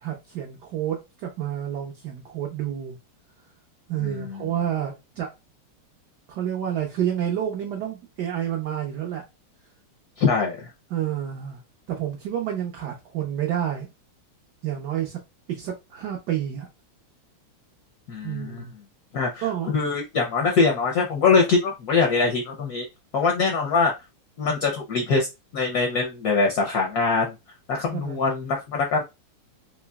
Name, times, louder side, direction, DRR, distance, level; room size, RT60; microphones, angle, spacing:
voice 1, 0.0-3.0 3.9-5.3 6.3-9.2 10.9-11.6 11.9-13.9 14.6-15.2 15.5-16.7 18.2-18.7 19.4-19.7 27.9-28.2, right 10 dB, 70° right, 1.0 m, -29 dB
voice 2, 4.0-4.5 10.2-10.7 18.1-18.6 19.1-19.5 19.7-22.9 23.1-23.9 24.4-25.3 25.5-27.3 27.7-29.0, left 4 dB, 70° left, 0.9 m, -23 dB
3.9 x 3.0 x 2.2 m
omnidirectional pair, 2.4 m